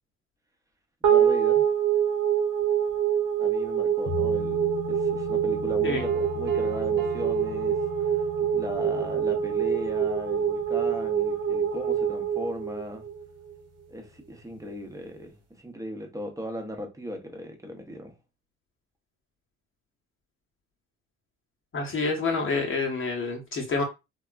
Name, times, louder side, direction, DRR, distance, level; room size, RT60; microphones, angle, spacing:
voice 1, 1.0-1.7 3.4-7.8 8.4-13.0 13.9-18.1, equal, 10° right, 0.8 m, -37 dB
sound 1, 1.0-13.6, right 8 dB, 55° right, 1.0 m, -25 dB
sound 2, 4.1-13.2 13.5-13.6, left 6 dB, 70° left, 1.0 m, -40 dB
Piano, 6.0-8.5, right 6 dB, 35° right, 1.1 m, -46 dB
voice 2, 21.7-23.8, left 3 dB, 40° left, 0.7 m, -27 dB
3.4 x 2.2 x 2.3 m
cardioid pair, 90°, 30 cm